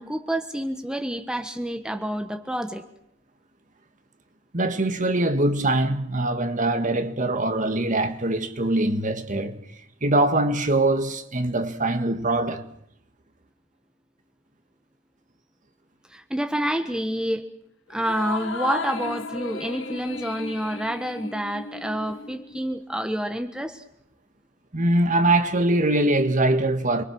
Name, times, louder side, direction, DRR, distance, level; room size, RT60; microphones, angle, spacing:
voice 1, 0.0-2.8 16.1-17.4 17.9-23.8, equal, 5° right, 1.2 m, -28 dB
voice 2, 4.5-9.6 10.0-12.7 24.7-27.0, right 2 dB, 40° right, 1.9 m, -22 dB
sound 1, 17.9-22.7, left 4 dB, 75° left, 2.0 m, -35 dB
29.0 x 23.0 x 6.3 m
head